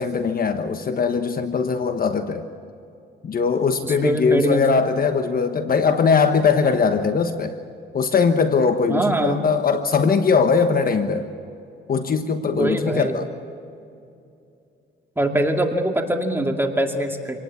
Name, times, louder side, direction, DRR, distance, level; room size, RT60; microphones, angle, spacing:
voice 1, 0.0-2.5 3.2-7.6 7.9-11.3 11.9-13.3, left 5 dB, 45° left, 8 dB, 1.3 m, -20 dB
voice 2, 3.8-4.8 8.9-9.4 12.5-13.1 15.2-17.4, right 1 dB, 10° right, 3 dB, 2.4 m, -23 dB
26.5 x 18.5 x 8.3 m, 2.6 s
cardioid pair, 90°, 20 cm